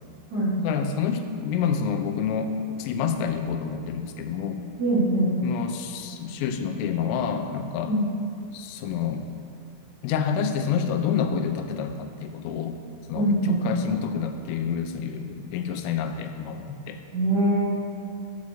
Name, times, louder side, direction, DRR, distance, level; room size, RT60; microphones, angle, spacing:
voice 1, 0.6-4.6 5.4-7.9 8.5-9.3 10.0-12.8 13.1-17.0, left 7 dB, 85° left, 6 dB, 3.1 m, -28 dB
voice 2, 4.8-5.3 7.8-8.0 13.1-13.6 17.1-17.7, right 1 dB, 35° right, -10 dB, 1.7 m, -23 dB
9.5 x 4.9 x 6.6 m, 2.3 s
omnidirectional pair, 5.7 m